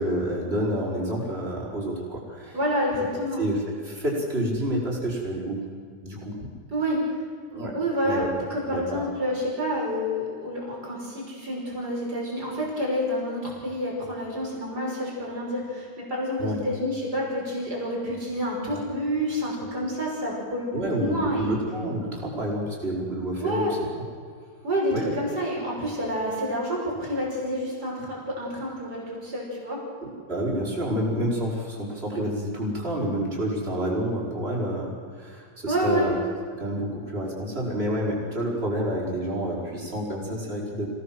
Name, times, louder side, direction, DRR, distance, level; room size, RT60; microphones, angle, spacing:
voice 1, 0.0-2.6 3.4-5.6 6.0-6.5 7.5-7.7 8.0-8.3 8.7-9.1 16.4-16.6 20.7-23.8 24.9-25.1 25.5-25.6 30.0-36.2 36.6-40.9, right 1 dB, 35° right, -3 dB, 5.5 m, -29 dB
voice 2, 2.5-3.4 6.7-7.1 7.7-8.2 8.5-21.6 23.4-23.8 24.6-29.8 35.7-36.1, equal, 85° right, -2 dB, 6.6 m, -28 dB
26.0 x 17.5 x 7.7 m, 2.1 s
omnidirectional pair, 1.7 m